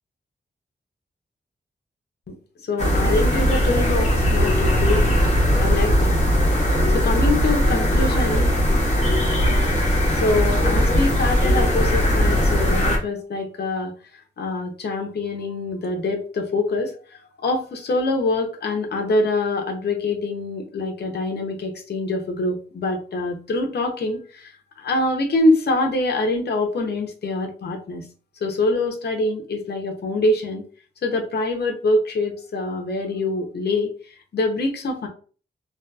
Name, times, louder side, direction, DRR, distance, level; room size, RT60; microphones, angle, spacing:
voice 1, 2.7-5.3 5.6-6.2 6.9-8.5 10.1-13.9 14.4-24.5 24.8-28.0 28.4-30.6 31.0-35.1, left 2 dB, 60° left, 2 dB, 0.6 m, -24 dB
sound 1, 2.8-13.0, equal, 35° left, 0.9 m, -19 dB
2.7 x 2.3 x 2.2 m, 0.39 s
wide cardioid pair, 125°, 19 cm